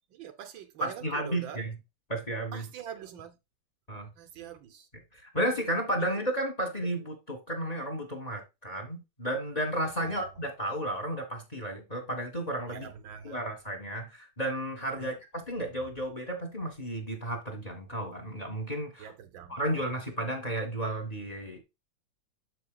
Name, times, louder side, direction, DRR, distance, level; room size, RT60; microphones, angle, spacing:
voice 1, 0.1-1.6 2.5-3.4 4.2-4.9 6.0-6.1 10.0-10.3 12.7-13.4 14.9-15.2 19.0-19.9, right 9 dB, 75° right, 1.6 m, -44 dB
voice 2, 0.8-1.7 2.1-2.7 3.9-4.1 5.1-12.9 13.2-19.1 19.5-21.6, right 1 dB, 20° left, 1.9 m, -33 dB
7.8 x 7.1 x 2.3 m
omnidirectional pair, 2.2 m